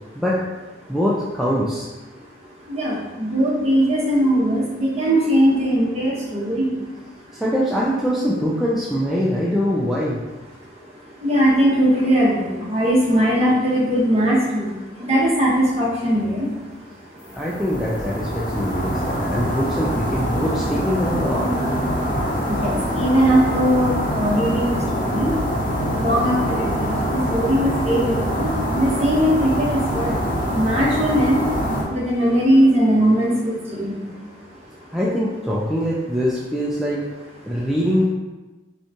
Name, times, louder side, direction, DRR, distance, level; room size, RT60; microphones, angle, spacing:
voice 1, 0.1-0.5 0.9-1.9 7.4-10.2 17.3-21.5 34.9-37.1 37.5-38.1, equal, ahead, -7 dB, 0.4 m, -23 dB
voice 2, 2.7-6.7 11.2-14.7 15.0-16.5 22.6-23.9 24.2-25.3 25.9-26.9 27.3-28.5 28.7-30.1 30.5-31.4 31.9-33.9, equal, 35° right, -6 dB, 1.1 m, -19 dB
sound 1, 17.3-31.8, equal, 50° left, 0.9 m, -24 dB
5.4 x 2.3 x 2.9 m, 1.2 s
head